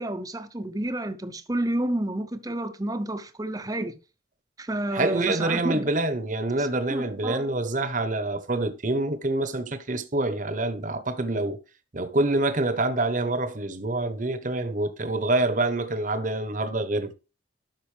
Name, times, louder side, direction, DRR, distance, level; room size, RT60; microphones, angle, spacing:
voice 1, 0.0-4.0 4.6-5.9 6.6-7.5, right 1 dB, 20° right, 0.7 m, -30 dB
voice 2, 4.9-11.6 11.9-17.1, right 2 dB, 40° right, 1.0 m, -26 dB
12.0 x 5.5 x 3.3 m
head